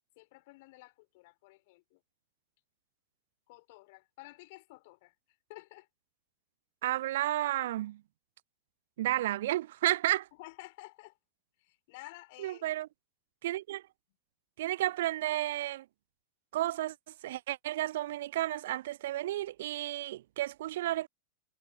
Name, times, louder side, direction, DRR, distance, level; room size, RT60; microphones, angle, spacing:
voice 1, 0.2-2.0 3.5-5.1 5.5-5.9 10.4-11.2 11.6-12.8 14.9-15.0, left 23 dB, 50° left, 4.7 m, -52 dB
voice 2, 6.8-8.0 9.0-10.3 12.4-12.9 13.4-13.8 14.6-15.8 16.5-17.0 17.2-21.1, right 14 dB, 55° right, 0.4 m, -32 dB
figure-of-eight pair, 90°, 0 cm